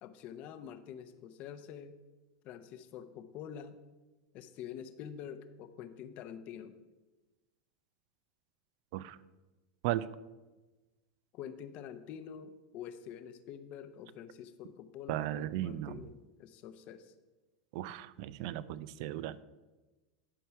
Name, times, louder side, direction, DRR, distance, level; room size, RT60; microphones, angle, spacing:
voice 1, 0.0-2.0 2.4-3.8 4.3-6.8 11.3-17.1, left 8 dB, 45° left, 11 dB, 0.7 m, -46 dB
voice 2, 15.1-16.0 17.7-19.4, right 14 dB, 60° right, 16 dB, 0.4 m, -36 dB
11.0 x 4.6 x 5.7 m, 1.2 s
supercardioid pair, 130°, 3 cm